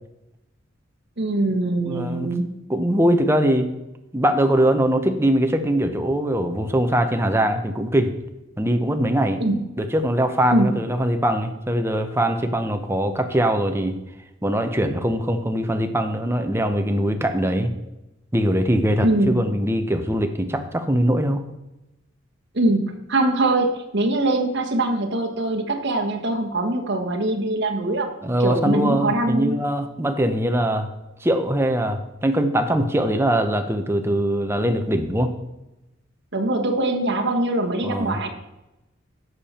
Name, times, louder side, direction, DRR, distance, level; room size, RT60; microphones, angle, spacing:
voice 1, 1.2-2.5 9.4-9.6 10.5-10.7 19.0-19.5 22.5-23.7 23.9-28.1 28.4-29.6 36.3-38.3, right 2 dB, 55° right, 3 dB, 1.5 m, -22 dB
voice 2, 1.9-2.3 2.7-3.7 4.1-8.1 8.6-9.4 9.8-14.0 14.4-17.7 18.3-21.4 28.2-30.9 31.2-35.3 37.8-38.2, right 1 dB, 10° right, 6 dB, 0.8 m, -22 dB
11.0 x 6.9 x 4.3 m, 0.95 s
head